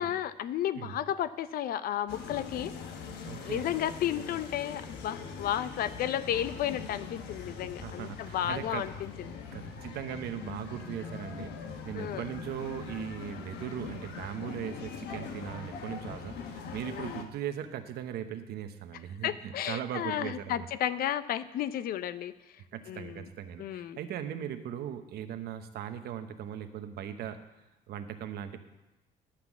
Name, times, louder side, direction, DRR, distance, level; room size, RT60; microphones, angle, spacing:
voice 1, 0.0-2.7 3.4-9.1 11.9-12.3 16.8-17.2 19.2-22.3 22.9-23.3 23.6-24.0, left 11 dB, 60° left, 15 dB, 0.5 m, -33 dB
sound 1, 2.1-17.2, left 5 dB, 80° left, 1.1 m, -42 dB
voice 2, 3.2-3.7 7.8-8.9 9.5-11.6 11.8-20.7 22.7-27.4 27.9-28.6, right 9 dB, 70° right, 8 dB, 1.0 m, -39 dB
11.5 x 5.9 x 7.2 m, 1.0 s
cardioid pair, 110°, 17 cm